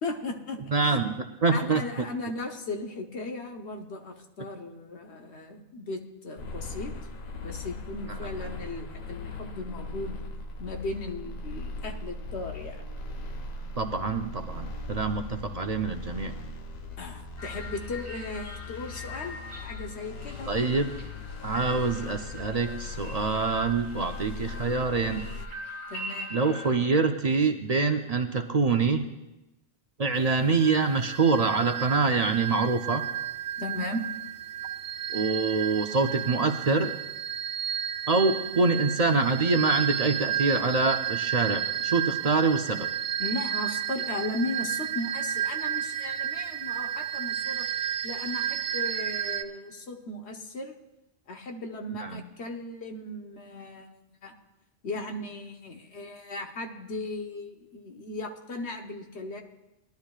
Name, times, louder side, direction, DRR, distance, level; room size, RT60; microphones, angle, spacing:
voice 1, 0.0-0.6 0.9-1.0 1.5-7.0 7.4-10.2 10.6-12.9 17.0-20.7 25.9-26.4 33.6-34.1 43.2-47.7 48.0-50.7 51.3-53.9 54.2-54.3 54.8-59.4, left 2 dB, 85° left, 4 dB, 1.4 m, -36 dB
voice 2, 0.7-1.1 1.4-1.8 13.8-16.3 20.5-20.9 21.4-25.2 26.3-29.0 30.0-33.0 35.1-36.9 38.1-42.9 52.0-52.2, right 4 dB, 45° right, 6 dB, 0.6 m, -25 dB
sound 1, 6.4-25.5, left 3 dB, 45° left, 0.7 m, -39 dB
sound 2, 17.4-26.8, left 1 dB, 15° left, 1.7 m, -42 dB
sound 3, 30.2-49.4, right 10 dB, 70° right, 0.8 m, -32 dB
19.5 x 11.5 x 2.4 m, 0.98 s
omnidirectional pair, 1.1 m